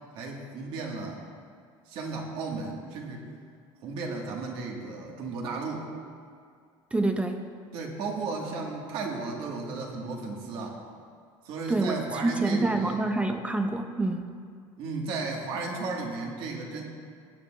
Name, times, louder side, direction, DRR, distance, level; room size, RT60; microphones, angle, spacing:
voice 1, 0.2-1.2 1.9-3.3 3.8-5.9 7.7-10.8 11.5-13.0 14.8-16.8, right 3 dB, 60° right, 0 dB, 1.8 m, -34 dB
voice 2, 6.9-7.4 11.7-14.3, right 2 dB, 10° right, 6 dB, 0.5 m, -27 dB
17.0 x 9.0 x 2.5 m, 2.2 s
cardioid pair, 150°, 10 cm